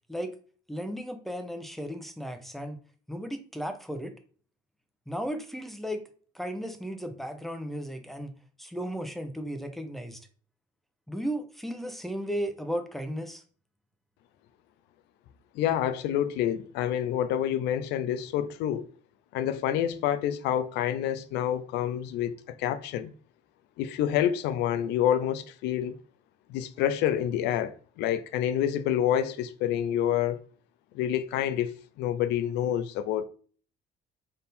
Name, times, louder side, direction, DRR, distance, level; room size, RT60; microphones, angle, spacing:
voice 1, 0.7-2.8 3.1-4.1 5.1-6.0 6.3-8.3 8.6-10.2 11.1-13.4, equal, ahead, 0.6 m, -35 dB
voice 2, 15.5-18.9 19.3-23.1 23.8-25.9 26.5-27.7 28.0-30.4 30.9-31.7 32.0-33.2, left 10 dB, 90° left, 0.5 m, -28 dB
3.7 x 2.6 x 4.1 m
cardioid pair, 110°, 17 cm